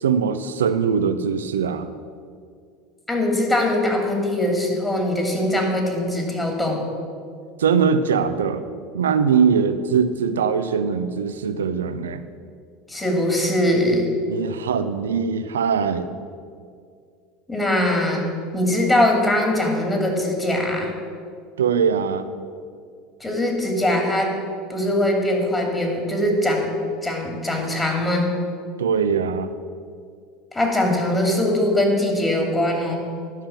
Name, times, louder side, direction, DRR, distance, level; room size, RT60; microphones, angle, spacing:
voice 1, 0.0-1.9 7.6-8.6 8.9-12.2 14.3-16.1 21.6-22.3 28.8-29.5, right 6 dB, 80° right, 11 dB, 0.6 m, -21 dB
voice 2, 3.1-6.9 12.9-14.1 17.5-18.2 18.5-20.9 23.2-24.4 24.7-26.7 27.0-28.3 30.5-33.0, left 1 dB, 15° left, 1 dB, 2.6 m, -21 dB
11.5 x 5.7 x 7.1 m, 2.2 s
hypercardioid pair, 80°, 0 cm